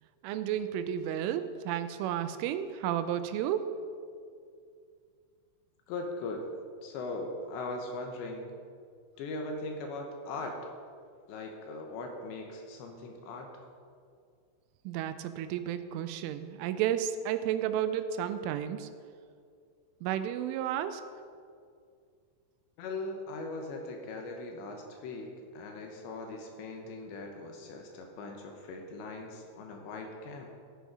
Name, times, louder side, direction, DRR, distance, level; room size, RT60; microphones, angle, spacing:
voice 1, 0.2-3.8 14.9-18.9 20.0-21.0, right 10 dB, 85° right, 11 dB, 3.0 m, -32 dB
voice 2, 5.9-6.5 6.8-8.5 9.2-10.6 11.3-13.5 22.8-30.5, left 2 dB, 75° left, 2 dB, 3.0 m, -40 dB
13.5 x 9.1 x 4.9 m, 2.2 s
omnidirectional pair, 5.7 m